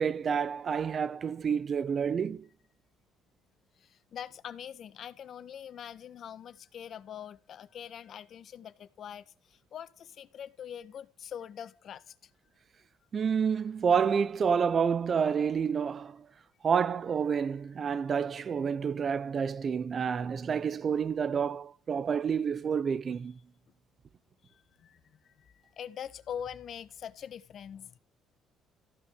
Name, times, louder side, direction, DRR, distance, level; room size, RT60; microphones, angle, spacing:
voice 1, 0.0-2.5 13.1-16.3 16.6-23.4, right 6 dB, 45° right, 0.8 m, -29 dB
voice 2, 3.8-12.3 24.4-28.0, left 9 dB, 60° left, 1.4 m, -44 dB
15.0 x 11.5 x 7.5 m
supercardioid pair, 75°, 0 cm